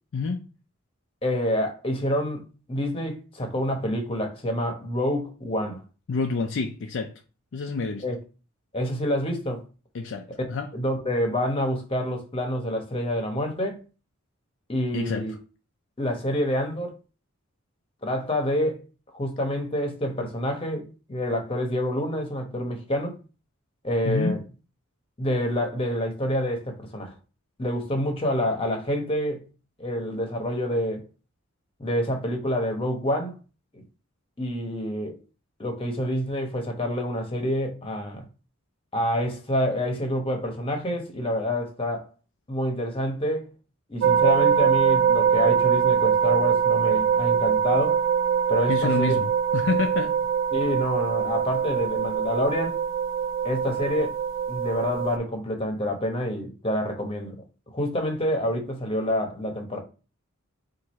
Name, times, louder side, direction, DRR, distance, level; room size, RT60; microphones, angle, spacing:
voice 1, 0.1-0.5 6.1-7.2 7.5-8.0 9.9-10.7 14.9-15.4 24.0-24.4 48.7-50.2, left 4 dB, 60° left, 0.4 m, -28 dB
voice 2, 1.2-2.4 2.7-5.8 8.0-8.2 8.7-9.6 10.7-13.8 14.7-15.3 16.0-17.0 18.0-18.8 19.1-23.2 23.8-24.4 25.2-27.1 27.6-29.4 29.8-31.0 31.8-33.3 33.7-33.8 34.4-35.2 35.6-38.2 38.9-42.1 42.5-43.5 43.9-48.0 48.5-49.2 50.5-52.8 53.4-54.2 54.5-59.8, equal, 25° left, 1.0 m, -27 dB
sound 1, 44.0-55.2, right 7 dB, 60° right, 0.3 m, -23 dB
4.6 x 2.6 x 4.1 m
head